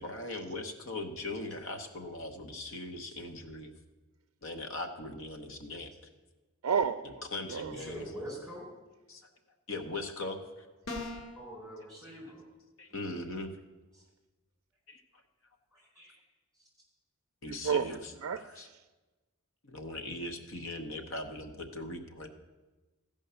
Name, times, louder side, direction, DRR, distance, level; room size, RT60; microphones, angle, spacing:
voice 1, 0.0-3.7 4.4-5.9 7.3-8.0 9.1-9.3 9.7-10.4 12.8-13.5 14.9-15.0 17.4-18.0 18.6-18.7 19.6-22.3, left 2 dB, 60° left, 6 dB, 1.0 m, -39 dB
voice 2, 6.6-7.2 7.5-7.8 17.5-18.8, right 6 dB, 80° right, 7 dB, 0.4 m, -32 dB
voice 3, 7.7-8.7 11.3-12.5 12.9-13.5 13.9-14.0 15.7-16.2 16.5-16.7, equal, 5° left, -5 dB, 4.5 m, -45 dB
sound 1, 10.9-11.4, left 2 dB, 90° left, 1.4 m, -38 dB
14.5 x 5.4 x 6.8 m, 1.2 s
head